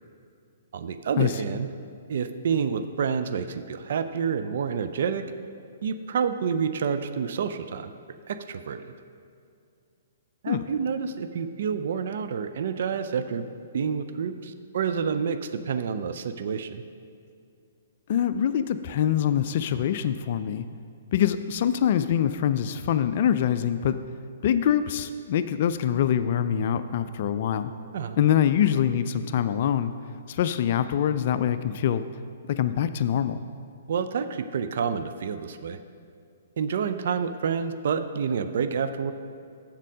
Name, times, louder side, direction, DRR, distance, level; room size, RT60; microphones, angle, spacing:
voice 1, 0.7-1.7 2.1-5.2 5.8-7.9 8.3-8.9 10.4-13.5 13.7-16.8 27.9-28.2 33.9-35.8 36.6-39.1, right 6 dB, 55° right, 10 dB, 0.4 m, -28 dB
voice 2, 18.1-20.7 21.1-24.0 24.4-27.7 28.2-29.9 30.3-32.0 32.5-33.4, left 9 dB, 50° left, 11 dB, 0.3 m, -24 dB
7.4 x 7.4 x 5.2 m, 2.3 s
figure-of-eight pair, 120°, 0 cm